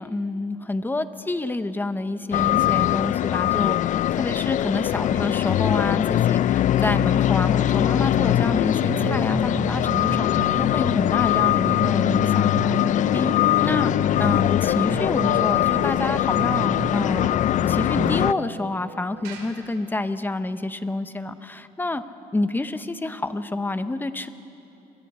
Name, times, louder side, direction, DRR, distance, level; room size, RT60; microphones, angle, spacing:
voice 1, 0.0-13.3 13.6-13.9 14.2-17.4 17.7-22.0 22.3-24.3, left 2 dB, 10° left, 11 dB, 0.9 m, -28 dB
sound 1, 2.3-18.3, left 12 dB, 50° left, 0.4 m, -21 dB
sound 2, 8.0-19.7, right 5 dB, 90° right, 3.7 m, -35 dB
29.5 x 23.5 x 4.3 m, 2.9 s
cardioid pair, 110°, 17 cm